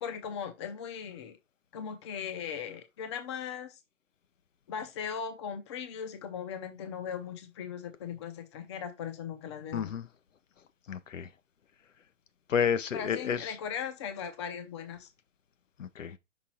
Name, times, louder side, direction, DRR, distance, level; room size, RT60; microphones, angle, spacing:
voice 1, 0.0-1.4 1.7-3.8 4.7-9.9 12.9-15.1, left 7 dB, 25° left, 0.6 m, -38 dB
voice 2, 9.7-10.1 10.9-11.3 12.5-13.5 15.8-16.2, left 7 dB, 80° left, 0.8 m, -30 dB
6.0 x 3.7 x 4.2 m
hypercardioid pair, 150°, 37 cm